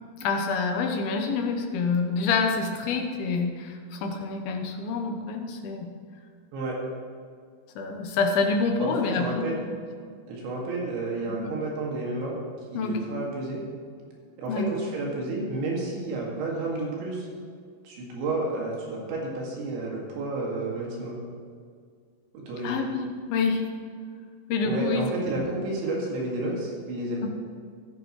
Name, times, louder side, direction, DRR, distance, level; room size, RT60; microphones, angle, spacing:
voice 1, 0.2-5.9 7.8-9.8 12.7-13.0 14.5-14.7 22.6-23.7 24.5-25.5, left 4 dB, 75° left, 3 dB, 2.5 m, -27 dB
voice 2, 8.8-9.6 10.3-12.3 12.7-13.6 14.4-17.3 17.8-21.2 22.3-22.8 24.6-27.3, right 2 dB, 80° right, -3 dB, 4.4 m, -31 dB
16.0 x 14.0 x 3.2 m, 2.1 s
omnidirectional pair, 5.2 m